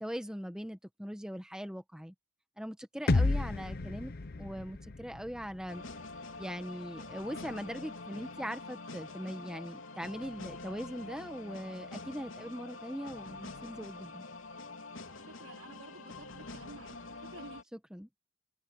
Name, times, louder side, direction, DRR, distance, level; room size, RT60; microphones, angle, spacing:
voice 1, 0.0-2.1 2.6-4.1 4.4-5.8 6.4-14.2 17.9-18.1, equal, 5° right, 1.2 m, -41 dB
sound 1, 3.1-7.0, left 2 dB, 50° left, 0.7 m, -33 dB
sound 2, 5.7-17.6, left 3 dB, 80° left, 3.1 m, -46 dB
voice 2, 15.2-17.6, right 2 dB, 75° right, 4.0 m, -52 dB
head